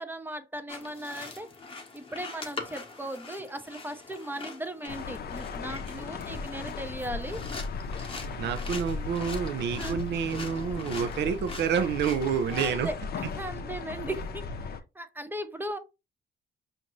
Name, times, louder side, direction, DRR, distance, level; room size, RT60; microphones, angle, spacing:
voice 1, 0.0-7.5 9.8-10.0 10.3-10.8 12.5-15.8, right 1 dB, 10° right, 0.7 m, -38 dB
sound 1, 0.7-12.7, left 3 dB, 25° left, 0.9 m, -43 dB
sound 2, 4.9-14.8, left 5 dB, 50° left, 0.6 m, -37 dB
voice 2, 8.4-12.9, right 7 dB, 60° right, 0.5 m, -28 dB
5.1 x 2.6 x 3.0 m
cardioid pair, 90°, 20 cm